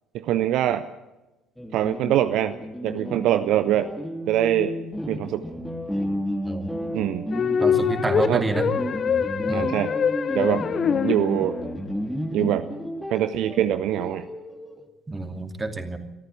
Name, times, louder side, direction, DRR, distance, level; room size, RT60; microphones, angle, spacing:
voice 1, 0.1-0.9 1.7-2.6 2.8-3.9 4.3-4.8 5.1-5.5 6.9-7.3 8.3-8.4 9.5-10.0 10.3-10.7 11.0-11.6 12.3-12.7 13.1-14.3, right 12 dB, 55° right, 11 dB, 0.8 m, -23 dB
sound 1, 1.6-14.8, equal, 5° left, 2.4 m, -32 dB
sound 2, 7.3-11.7, left 7 dB, 40° left, 0.9 m, -24 dB
voice 2, 7.6-8.7 9.5-9.7 15.1-16.0, right 3 dB, 20° right, 6 dB, 2.7 m, -28 dB
23.0 x 14.0 x 8.3 m, 1.0 s
figure-of-eight pair, 55°, 0 cm